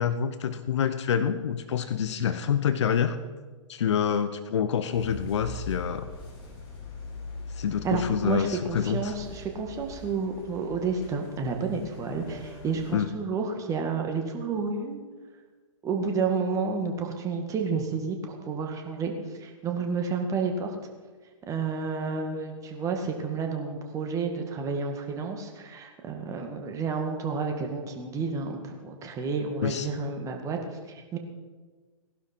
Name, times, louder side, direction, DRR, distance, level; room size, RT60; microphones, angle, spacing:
voice 1, 0.0-3.2 3.7-6.1 7.5-9.1 12.9-13.1 29.6-29.9, left 8 dB, 60° left, 12 dB, 0.8 m, -27 dB
sound 1, 4.9-13.0, left 3 dB, 45° left, 4.2 m, -42 dB
voice 2, 7.8-15.0 15.8-19.1 19.4-20.8 21.5-31.2, right 4 dB, 20° right, 3 dB, 2.0 m, -30 dB
18.5 x 11.5 x 4.5 m, 1.4 s
figure-of-eight pair, 120°, 16 cm